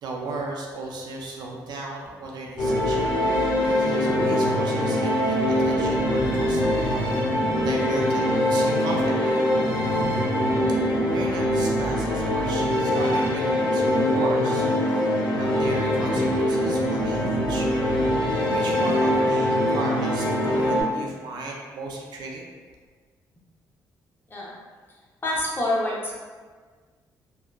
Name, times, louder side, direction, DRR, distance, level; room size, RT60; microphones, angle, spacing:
voice 1, 0.0-6.9 7.5-9.5 10.9-17.7 18.5-22.5, right 3 dB, 70° right, -1 dB, 0.4 m, -35 dB
sound 1, 2.6-20.8, left 1 dB, 75° left, 0.6 m, -23 dB
voice 2, 25.2-26.1, left 1 dB, 30° left, -5 dB, 0.8 m, -26 dB
2.7 x 2.1 x 2.3 m, 1.5 s
supercardioid pair, 70°, 8 cm